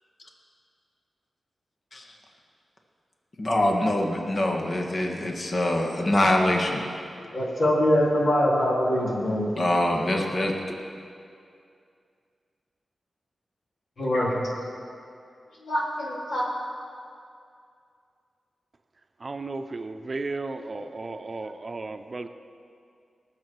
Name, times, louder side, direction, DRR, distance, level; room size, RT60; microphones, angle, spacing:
voice 1, 3.4-6.8 9.6-10.5, left 1 dB, 50° left, 0 dB, 1.8 m, -24 dB
voice 2, 7.3-9.5 14.0-14.5 15.7-16.5, equal, 65° left, -5 dB, 3.5 m, -23 dB
voice 3, 19.2-22.3, right 3 dB, 45° right, 8 dB, 0.7 m, -34 dB
19.5 x 7.4 x 4.7 m, 2.4 s
cardioid pair, 60°, 0 cm